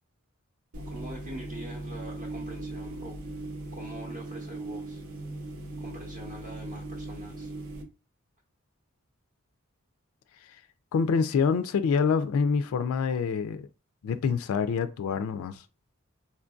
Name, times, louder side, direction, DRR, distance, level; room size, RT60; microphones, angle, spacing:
sound 1, 0.7-7.8, right 2 dB, 90° right, 0.7 m, -39 dB
voice 1, 0.9-3.2 3.7-5.0 5.8-7.5, right 1 dB, 40° right, 0.7 m, -43 dB
voice 2, 10.9-13.7 14.0-15.6, left 5 dB, 85° left, 0.3 m, -26 dB
4.3 x 2.5 x 2.3 m
head